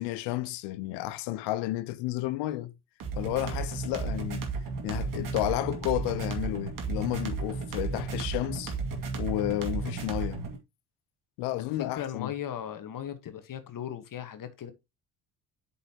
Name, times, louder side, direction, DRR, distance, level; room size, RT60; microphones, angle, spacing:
voice 1, 0.0-2.7 3.2-4.5 4.8-8.7 9.2-10.4 11.4-12.3, left 16 dB, 90° left, 0.7 m, -31 dB
sound 1, 3.0-10.6, right 4 dB, 55° right, 2.2 m, -33 dB
voice 2, 11.5-14.7, left 10 dB, 55° left, 1.4 m, -37 dB
7.7 x 5.6 x 2.9 m
supercardioid pair, 75°, 39 cm